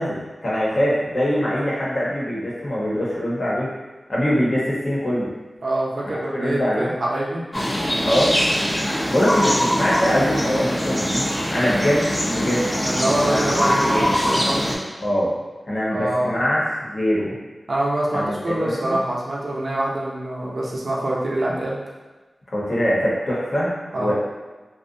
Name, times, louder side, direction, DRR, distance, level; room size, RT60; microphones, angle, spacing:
voice 1, 0.0-3.7 4.1-5.3 6.0-6.9 8.0-8.4 9.1-11.2 11.5-12.7 13.0-14.2 15.0-15.3 15.7-17.4 18.1-19.0 22.5-24.1, equal, 60° left, -6 dB, 0.8 m, -23 dB
voice 2, 5.6-7.4 9.4-9.5 12.8-14.8 15.9-16.4 17.7-21.8 23.9-24.1, right 1 dB, 70° right, -5 dB, 0.5 m, -25 dB
sound 1, 7.5-14.8, equal, 15° left, 0.5 m, -22 dB
2.6 x 2.1 x 2.6 m, 1.2 s
wide cardioid pair, 55°, 0 cm